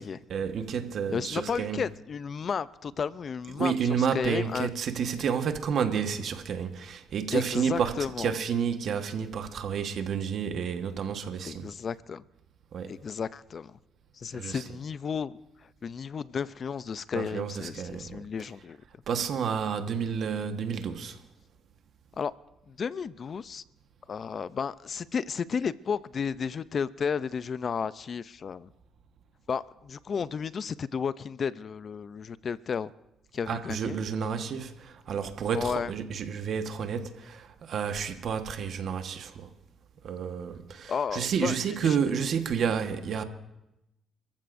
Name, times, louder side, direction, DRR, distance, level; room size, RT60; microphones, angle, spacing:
voice 1, 0.3-1.8 3.6-11.7 12.7-12.9 14.4-14.6 17.1-18.2 19.1-21.2 33.5-39.5 40.0-43.2, right 7 dB, 65° right, 1.3 m, -30 dB
voice 2, 1.1-4.7 7.3-8.3 11.4-12.2 12.8-13.8 14.1-18.8 22.2-22.3 22.7-23.6 24.1-28.7 29.5-32.9 33.3-34.0 35.5-35.9 40.9-42.0, left 6 dB, 50° left, 0.5 m, -33 dB
27.5 x 14.5 x 2.6 m
cardioid pair, 90°, 0 cm